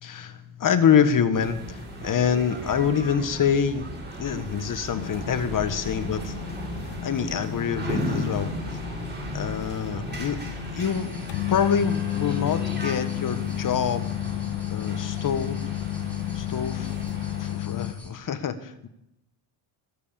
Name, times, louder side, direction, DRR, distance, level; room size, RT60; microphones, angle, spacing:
voice 1, 0.0-3.9 4.2-6.4 7.0-8.5 9.3-10.4 10.7-11.1 11.5-14.4 14.7-15.6 16.3-16.9 17.4-18.9, left 7 dB, 40° left, 11 dB, 1.5 m, -26 dB
sound 1, 1.3-17.5, equal, 20° right, 6.9 m, -36 dB
sound 2, 4.9-17.9, left 15 dB, 80° left, 0.7 m, -32 dB
sound 3, 10.8-18.1, equal, 5° left, 5.7 m, -48 dB
21.0 x 8.4 x 7.1 m, 0.83 s
cardioid pair, 100°, 49 cm